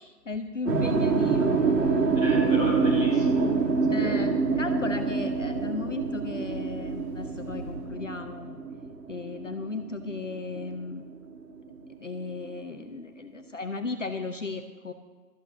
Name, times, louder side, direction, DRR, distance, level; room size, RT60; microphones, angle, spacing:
voice 1, 0.0-1.6 1.9-2.0 3.9-8.6 9.1-11.0 12.0-14.9, left 3 dB, 50° left, 6 dB, 0.8 m, -35 dB
sound 1, 0.7-10.8 11.0-12.7, right 4 dB, 75° right, 2.5 m, -26 dB
voice 2, 2.2-4.6, left 1 dB, 15° right, -8 dB, 4.8 m, -35 dB
13.0 x 9.0 x 6.1 m, 1.5 s
figure-of-eight pair, 165°, 49 cm